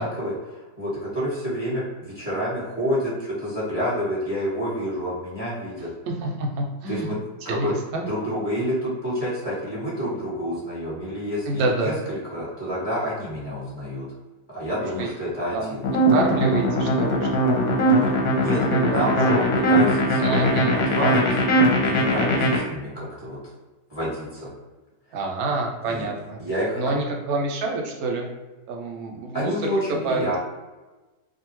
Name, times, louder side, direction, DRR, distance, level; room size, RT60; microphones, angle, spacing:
voice 1, 0.0-5.9 6.9-7.2 7.4-7.7 8.1-14.1 14.5-15.8 18.4-18.6 18.9-20.6 20.9-23.4 23.9-24.5 25.9-26.1 26.4-26.8 29.3-30.4, equal, 25° left, -8 dB, 1.1 m, -28 dB
voice 2, 6.1-7.1 7.4-8.0 11.5-11.9 15.0-15.1 15.5-15.8 16.1-18.0 18.7-19.1 20.2-20.7 25.1-26.4 26.8-28.3 28.7-30.3, right 3 dB, 70° right, 0 dB, 0.9 m, -27 dB
sound 1, 15.8-22.6, equal, 65° left, 1.1 m, -20 dB
2.7 x 2.4 x 3.0 m, 1.2 s
omnidirectional pair, 1.9 m